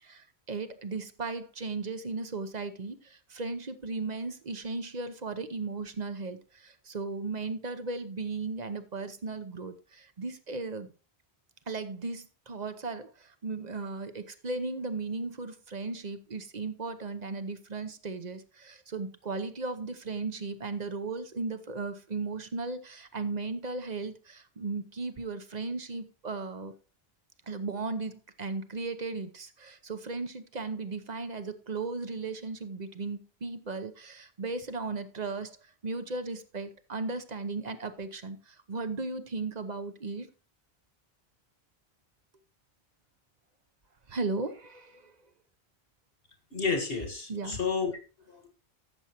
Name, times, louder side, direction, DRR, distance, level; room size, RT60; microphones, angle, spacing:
voice 1, 0.0-10.9 11.7-26.7 27.5-35.6 35.8-40.3 44.1-45.1 47.3-47.6, right 3 dB, 45° right, 0.9 m, -36 dB
voice 2, 46.5-47.9 48.3-48.5, left 5 dB, 65° left, 1.9 m, -31 dB
13.5 x 7.1 x 3.0 m
omnidirectional pair, 1.1 m